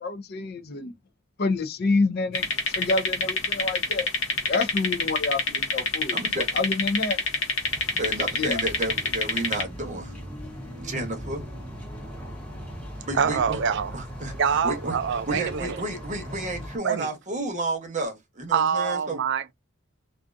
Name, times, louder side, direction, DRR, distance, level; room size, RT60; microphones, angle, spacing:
voice 1, 0.0-0.9 1.4-2.5 2.7-4.1 4.5-7.2 8.4-8.6, left 3 dB, 45° left, 0.4 m, -27 dB
sound 1, 2.3-9.6, left 3 dB, 65° left, 0.9 m, -26 dB
voice 2, 6.1-6.6 7.9-10.1 10.8-11.4 13.0-13.6 13.9-14.3 14.6-14.9 15.3-19.2, right 2 dB, 35° right, 0.8 m, -31 dB
sound 2, 7.6-16.8, equal, 5° left, 0.9 m, -39 dB
voice 3, 13.1-14.0 14.4-15.8 16.8-17.1 18.5-19.5, right 7 dB, 55° right, 0.3 m, -25 dB
2.5 x 2.3 x 2.4 m
head